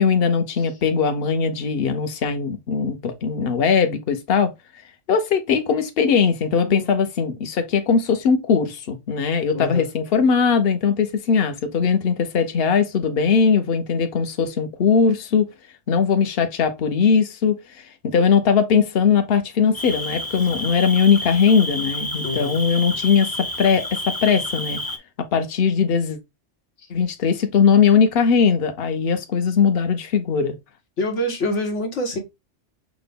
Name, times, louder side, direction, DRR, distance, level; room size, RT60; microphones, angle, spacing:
voice 1, 0.0-4.5 5.1-15.5 15.9-24.8 25.3-26.2 26.9-30.6, left 6 dB, 60° left, 1.0 m, -20 dB
voice 2, 9.5-9.9 22.2-22.5 31.0-32.2, left 1 dB, 85° left, 1.5 m, -26 dB
Cricket, 19.7-25.0, left 1 dB, 25° left, 0.6 m, -30 dB
6.1 x 2.2 x 3.4 m
omnidirectional pair, 1.2 m